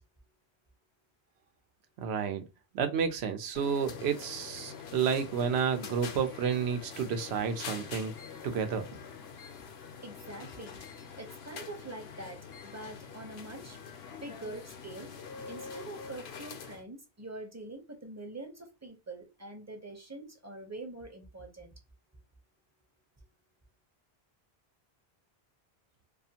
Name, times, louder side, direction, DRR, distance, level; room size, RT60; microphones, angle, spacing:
voice 1, 2.0-2.5 2.7-8.1 8.4-8.9, right 7 dB, 90° right, 0.8 m, -30 dB
sound 1, 3.5-16.8, left 6 dB, 80° left, 0.8 m, -45 dB
voice 2, 10.0-10.8 11.2-13.8 14.2-15.1 15.5-21.7, right 2 dB, 20° right, 0.5 m, -44 dB
2.4 x 2.4 x 2.7 m
omnidirectional pair, 1.1 m